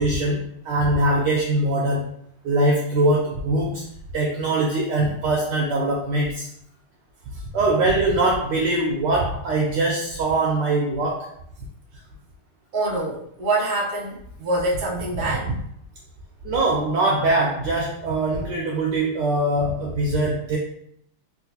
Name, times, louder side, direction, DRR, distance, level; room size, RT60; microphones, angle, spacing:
voice 1, 0.0-2.1 2.4-3.8 4.1-6.5 7.5-11.3 16.4-20.6, right 2 dB, 80° right, -2 dB, 1.0 m, -22 dB
voice 2, 12.7-15.5, right 2 dB, 45° right, -4 dB, 0.7 m, -25 dB
3.8 x 2.4 x 2.8 m, 0.69 s
omnidirectional pair, 2.4 m